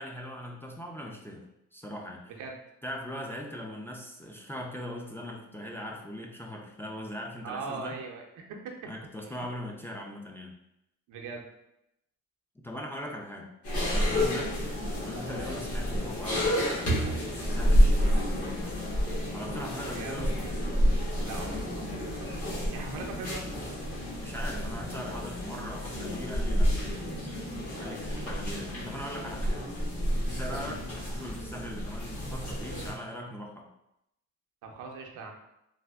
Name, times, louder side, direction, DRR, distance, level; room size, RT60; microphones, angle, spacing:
voice 1, 0.0-1.4 1.7-2.3 2.8-8.0 8.9-10.5 12.6-13.5 13.9-14.6 15.0-18.9 19.3-20.5 24.2-29.7 30.2-33.7, equal, 10° left, 0 dB, 0.4 m, -40 dB
voice 2, 2.3-2.6 7.4-8.6 9.2-9.5 11.1-11.5 14.2-14.5 19.9-20.2 21.2-22.4 22.7-23.4 30.5-30.7 34.6-35.3, right 4 dB, 85° right, 1 dB, 0.6 m, -40 dB
sound 1, 13.6-32.9, equal, 50° left, 1.3 m, -29 dB
3.3 x 2.6 x 2.3 m, 0.84 s
cardioid pair, 90°, 30 cm